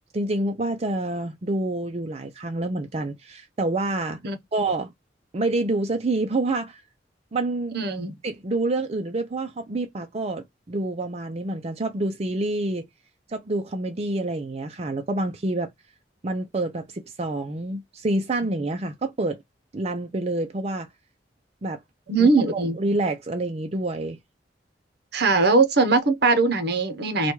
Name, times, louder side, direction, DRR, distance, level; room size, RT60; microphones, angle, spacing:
voice 1, 0.1-4.2 4.5-4.9 5.3-6.8 7.3-7.8 8.2-12.9 13.3-15.7 16.2-19.4 19.7-20.9 21.6-21.8 22.2-24.2, right 2 dB, 35° right, 0.5 m, -27 dB
voice 2, 7.7-8.2 22.1-22.8 25.1-27.3, right 3 dB, 60° right, 0.9 m, -20 dB
4.2 x 2.3 x 4.5 m
head